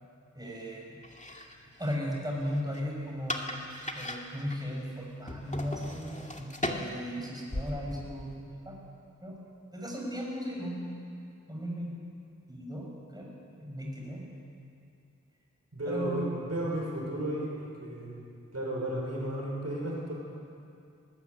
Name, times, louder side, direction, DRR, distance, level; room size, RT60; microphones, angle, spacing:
voice 1, 0.3-1.0 1.8-3.6 3.9-8.8 9.2-9.4 9.7-11.0 11.5-11.9 12.5-13.3 13.6-14.3 15.9-16.3, equal, 15° right, -2 dB, 6.0 m, -36 dB
sound 1, 1.0-8.4, left 1 dB, 25° left, 2.3 m, -39 dB
voice 2, 15.7-18.1 18.5-20.1, right 1 dB, 60° right, -3 dB, 6.1 m, -34 dB
20.0 x 20.0 x 8.3 m, 2.5 s
wide cardioid pair, 50°, 30 cm